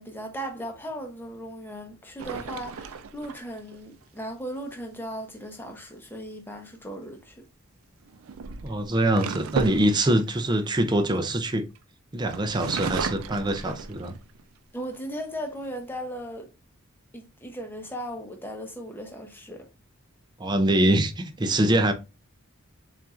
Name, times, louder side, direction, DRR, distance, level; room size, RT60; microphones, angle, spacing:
voice 1, 0.0-7.4 14.7-16.5 17.1-19.7, equal, 10° left, 0.7 m, -37 dB
sound 1, 2.2-3.8 6.7-7.0 8.0-11.8 12.3-14.4 14.9-15.0 15.4-15.9, right 5 dB, 75° right, 0.4 m, -35 dB
voice 2, 8.6-11.7 12.1-14.2 20.4-21.9, right 1 dB, 20° right, 0.4 m, -24 dB
7.2 x 2.5 x 2.4 m
head